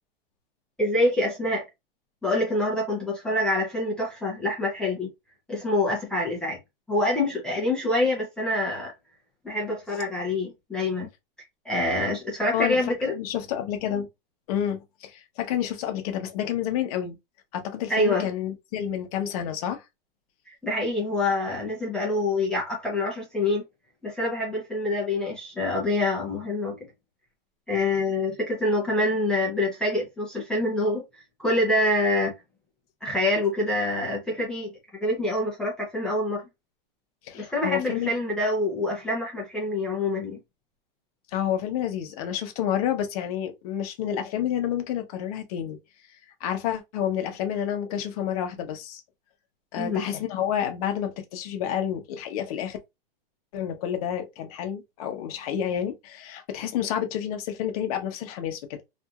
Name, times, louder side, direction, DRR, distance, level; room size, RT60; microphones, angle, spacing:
voice 1, 0.8-1.7 2.2-5.1 5.5-6.6 6.9-8.9 9.4-11.1 11.7-13.1 17.9-18.3 20.5-23.6 24.0-26.8 27.7-31.0 31.4-32.3 33.0-34.7 35.0-36.4 37.3-40.4 49.8-50.0, left 2 dB, 5° left, 0.5 m, -26 dB
voice 2, 13.1-14.1 14.5-17.2 17.5-19.8 37.2-38.1 41.3-45.8 46.4-49.0 49.7-52.8 53.5-58.8, left 10 dB, 40° left, 0.8 m, -29 dB
2.8 x 2.5 x 2.3 m
supercardioid pair, 160°, 29 cm